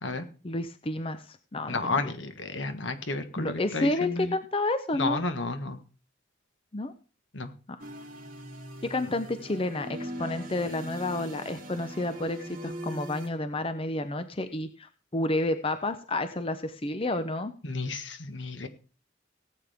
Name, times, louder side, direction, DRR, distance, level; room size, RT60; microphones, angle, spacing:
voice 1, 0.4-2.1 3.4-5.2 6.7-6.9 8.8-17.5, left 2 dB, 30° left, 10 dB, 0.7 m, -30 dB
voice 2, 1.7-4.3 4.9-5.8 7.3-7.5 17.6-18.7, left 3 dB, 75° left, 8 dB, 1.5 m, -32 dB
sound 1, 7.8-13.3, equal, 45° right, 2.8 m, -40 dB
18.0 x 8.5 x 3.6 m, 0.36 s
head